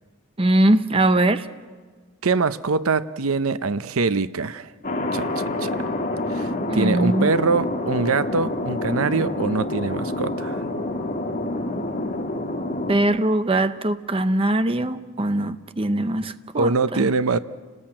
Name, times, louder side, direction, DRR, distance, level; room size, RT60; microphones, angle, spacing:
voice 1, 0.4-1.5 6.7-7.3 12.9-17.1, right 1 dB, 25° right, 0.7 m, -21 dB
voice 2, 2.2-4.7 5.1-5.7 6.3-10.6 16.5-17.4, right 4 dB, 80° right, 0.7 m, -23 dB
Thunder, 4.8-13.0, left 1 dB, 40° left, 2.6 m, -27 dB
29.0 x 19.5 x 8.9 m
head